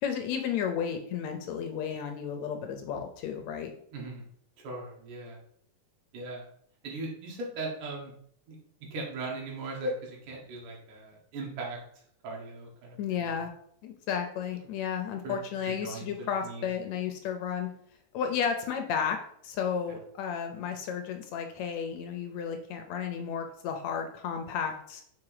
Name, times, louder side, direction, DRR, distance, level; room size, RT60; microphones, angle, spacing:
voice 1, 0.0-3.7 13.0-13.5 13.8-17.7 18.1-25.0, left 7 dB, 75° left, 5 dB, 1.8 m, -33 dB
voice 2, 3.9-4.2 4.6-5.4 6.1-6.4 6.8-8.1 8.5-8.6 8.9-13.4 15.2-16.7 19.9-20.0, right 2 dB, 90° right, -1 dB, 3.1 m, -39 dB
5.9 x 4.5 x 4.8 m, 0.65 s
omnidirectional pair, 3.5 m